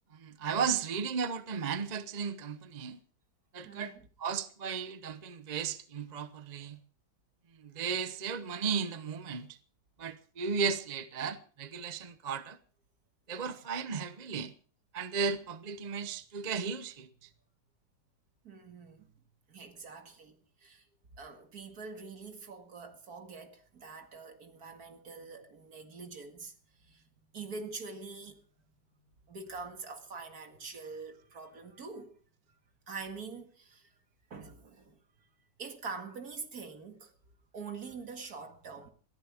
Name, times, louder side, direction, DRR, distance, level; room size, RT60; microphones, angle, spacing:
voice 1, 0.1-3.0 3.5-3.9 4.2-6.8 7.6-9.5 10.0-12.6 13.3-14.5 14.9-17.3, right 6 dB, 35° right, 0.7 m, -35 dB
voice 2, 3.6-4.1 13.5-13.7 18.4-19.1 19.5-20.9 21.1-26.5 26.8-28.4 29.3-32.2 32.9-33.9 34.3-35.0 35.6-37.1 37.5-38.9, right 4 dB, 60° right, 2.4 m, -45 dB
21.5 x 14.5 x 3.5 m
omnidirectional pair, 1.9 m